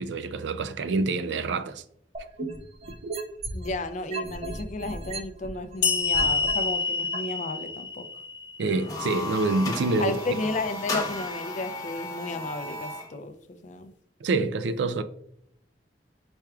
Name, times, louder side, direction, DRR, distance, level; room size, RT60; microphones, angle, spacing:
voice 1, 0.0-1.8 3.0-3.1 8.6-10.1 14.2-15.0, right 3 dB, 80° right, 0.4 m, -26 dB
sound 1, 2.1-3.7 4.1-6.5 7.1-7.2, right 3 dB, 40° right, 0.8 m, -35 dB
voice 2, 3.5-8.1 10.0-13.9, left 2 dB, 40° left, 0.4 m, -33 dB
sound 2, 5.8-9.2, left 4 dB, 85° left, 0.7 m, -28 dB
sound 3, 8.7-13.1, left 2 dB, 20° left, 0.9 m, -34 dB
4.7 x 4.4 x 2.3 m
head